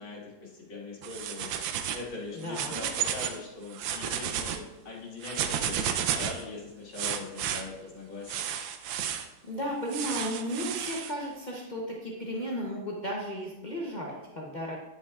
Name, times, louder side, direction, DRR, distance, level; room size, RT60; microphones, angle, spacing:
voice 1, 0.0-1.6 1.9-8.5, left 3 dB, 85° left, -4 dB, 2.5 m, -41 dB
sound 1, 1.0-2.1 2.4-3.4 3.7-4.6 5.2-6.4 7.0-7.6 8.3-9.3 9.9-11.1, right 9 dB, 80° right, 1.3 m, -32 dB
voice 2, 2.3-2.8 9.5-14.8, equal, 70° left, -4 dB, 0.4 m, -34 dB
10.0 x 5.4 x 2.4 m, 1.0 s
omnidirectional pair, 2.1 m